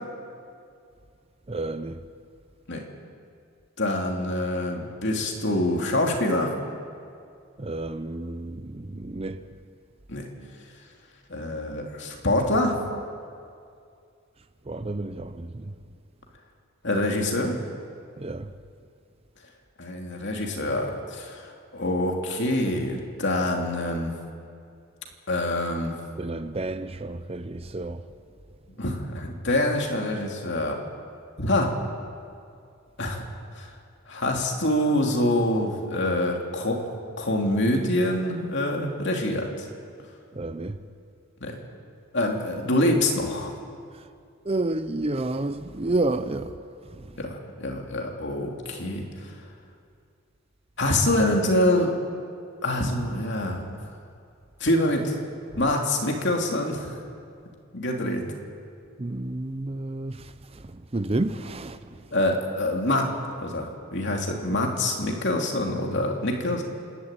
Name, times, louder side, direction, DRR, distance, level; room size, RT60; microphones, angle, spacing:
voice 1, 1.5-2.0 7.6-9.4 14.7-15.7 18.2-18.5 26.2-28.1 40.3-40.8 44.4-46.6 46.9-47.2 55.5-55.6 59.0-62.1, right 2 dB, 25° right, 0.6 m, -30 dB
voice 2, 3.8-6.5 10.1-10.2 11.3-12.8 16.8-17.6 19.8-24.1 25.3-26.0 28.8-30.8 31.4-31.7 33.0-33.2 33.6-33.7 34.1-36.8 37.2-39.7 41.4-41.6 42.1-43.5 47.2-49.3 50.8-52.0 52.6-53.7 54.6-55.2 55.6-57.0 57.7-58.2 62.1-63.1 63.4-66.6, left 1 dB, 55° left, 2.8 m, -25 dB
28.0 x 12.5 x 9.1 m
head